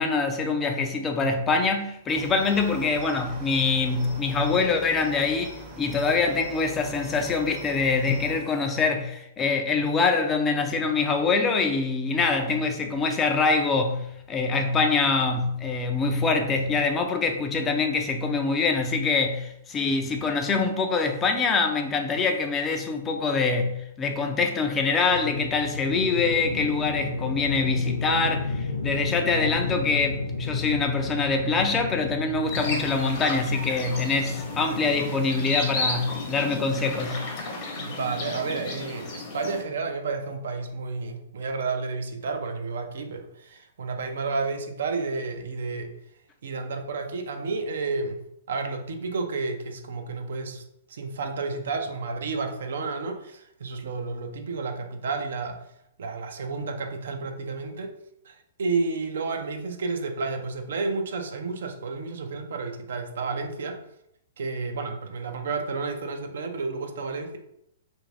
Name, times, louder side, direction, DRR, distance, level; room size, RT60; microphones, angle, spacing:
voice 1, 0.0-37.3, left 4 dB, 20° left, 0.4 m, -24 dB
Cricket, 2.1-8.4, right 1 dB, 30° right, 0.7 m, -42 dB
sound 1, 25.1-37.3, left 3 dB, 80° left, 0.5 m, -33 dB
sound 2, 32.5-39.6, left 3 dB, 40° left, 0.8 m, -33 dB
voice 2, 37.7-45.9 46.4-48.2 48.5-50.6 50.9-55.6 56.0-57.9 58.2-63.8 64.4-67.4, right 4 dB, 70° right, 0.5 m, -31 dB
2.5 x 2.5 x 3.2 m
hypercardioid pair, 120°, 0 cm